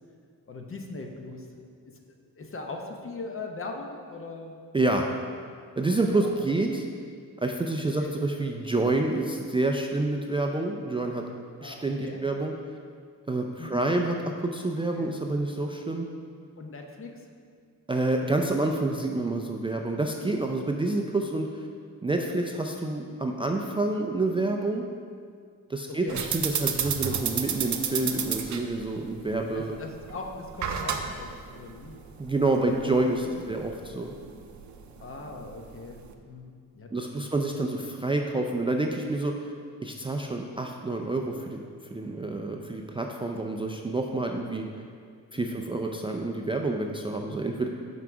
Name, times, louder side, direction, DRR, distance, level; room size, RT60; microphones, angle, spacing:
voice 1, 0.5-1.5 2.4-4.6 6.1-6.3 8.0-8.1 11.6-12.2 13.6-13.8 14.9-15.2 16.6-17.3 22.1-22.3 25.9-26.2 29.5-32.0 33.0-33.5 35.0-37.3 37.6-37.8 44.2-44.3 45.3-45.6, left 3 dB, 40° left, 2 dB, 0.8 m, -40 dB
voice 2, 4.7-5.1 5.8-6.9 7.4-11.3 11.6-12.5 13.3-16.1 17.9-21.7 22.0-24.9 25.7-29.8 32.2-34.1 36.9-39.5 39.8-44.6 45.3-47.7, right 2 dB, 15° right, 1 dB, 0.4 m, -28 dB
sound 1, 26.1-36.1, right 7 dB, 60° right, 0.6 m, -33 dB
5.8 x 4.7 x 6.0 m, 2.2 s
cardioid pair, 105°, 33 cm